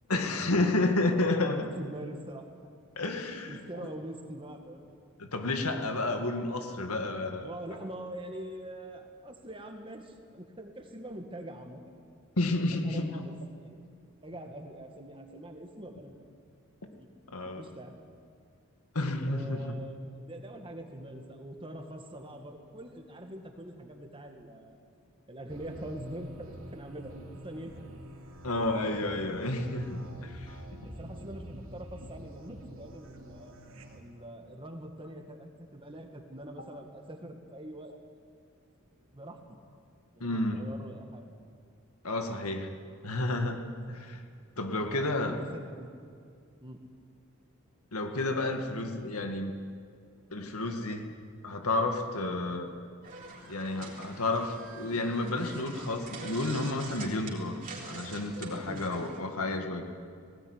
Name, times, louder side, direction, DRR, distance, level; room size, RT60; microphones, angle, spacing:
voice 1, 0.1-1.6 3.0-3.9 5.2-7.5 12.4-13.2 17.3-17.6 18.9-19.7 28.4-30.6 40.2-40.7 42.0-42.7 43.0-44.2 44.6-45.4 47.9-49.5 50.3-51.1 51.4-52.7 53.5-57.6 57.8-59.8, left 2 dB, 85° left, 5 dB, 2.0 m, -31 dB
voice 2, 0.8-2.5 3.2-4.9 7.4-11.8 12.7-13.3 13.6-13.8 14.2-16.1 17.0-17.1 17.6-17.9 19.3-24.8 25.3-27.2 27.4-27.9 30.8-33.6 33.9-37.9 39.1-39.6 40.2-41.2 44.9-45.9 46.6-46.8 58.6-58.8, right 1 dB, 25° right, 4 dB, 2.1 m, -44 dB
sound 1, 25.5-34.0, right 1 dB, 65° right, 3.0 m, -47 dB
sound 2, 53.0-59.2, right 3 dB, 40° right, 3.6 m, -45 dB
19.0 x 17.5 x 9.8 m, 2.3 s
head